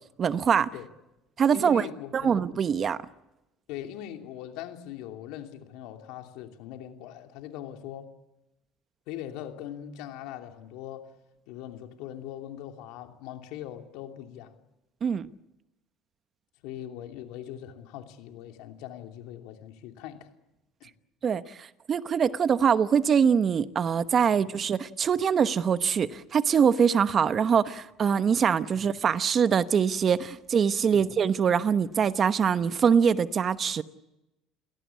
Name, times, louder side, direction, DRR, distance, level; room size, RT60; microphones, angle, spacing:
voice 1, 0.2-0.7 1.4-3.0 15.0-15.3 21.2-33.8, right 7 dB, 40° right, 1.0 m, -24 dB
voice 2, 1.5-2.4 3.7-8.1 9.1-11.1 11.5-14.6 16.6-20.3 20.8-20.9 24.3-24.4 28.7-28.8 30.9-31.1, left 11 dB, 75° left, 2.9 m, -41 dB
29.0 x 17.5 x 8.5 m
supercardioid pair, 100°, 0 cm